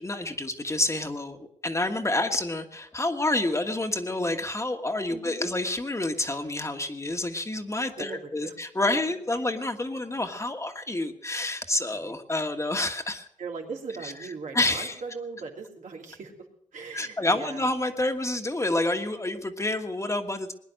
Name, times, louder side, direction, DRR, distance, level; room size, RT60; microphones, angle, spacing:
voice 1, 0.0-13.3 14.0-14.1 14.5-15.0 16.9-20.5, left 2 dB, 25° left, 6 dB, 1.5 m, -28 dB
voice 2, 5.1-5.5 8.0-8.5 11.9-12.2 13.4-16.3 16.7-17.7, right 4 dB, 85° right, 0 dB, 3.0 m, -39 dB
20.5 x 10.5 x 6.5 m, 0.69 s
wide cardioid pair, 85°, 13 cm